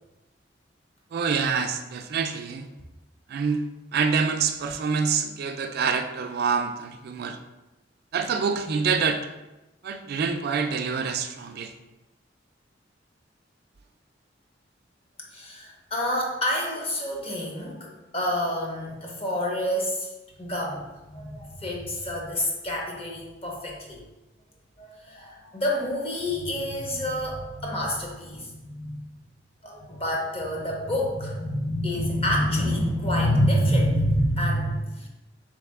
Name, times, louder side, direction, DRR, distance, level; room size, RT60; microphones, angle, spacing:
voice 1, 1.1-2.7 3.3-3.7 3.9-7.4 8.1-9.3 9.8-11.7, right 5 dB, 55° right, 6 dB, 0.3 m, -26 dB
voice 2, 15.3-20.1 20.4-24.0 24.8-29.0 29.6-35.1, equal, 35° left, -1 dB, 0.8 m, -27 dB
3.7 x 3.2 x 3.5 m, 1.0 s
head